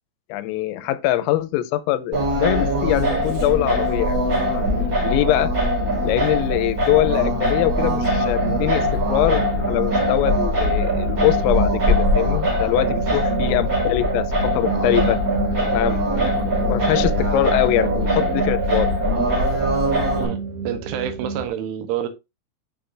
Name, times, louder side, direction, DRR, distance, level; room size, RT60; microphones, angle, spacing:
voice 1, 0.3-4.6 5.0-5.5 6.0-15.2 15.6-19.0, left 15 dB, 90° left, 3.3 m, -23 dB
Singing, 2.1-20.3, equal, 25° right, 4.5 m, -22 dB
sound 1, 3.6-21.5, right 5 dB, 45° right, 2.2 m, -31 dB
voice 2, 12.8-13.3 16.9-17.2 20.2-22.1, right 9 dB, 75° right, 3.2 m, -30 dB
8.8 x 7.2 x 2.5 m
omnidirectional pair, 5.9 m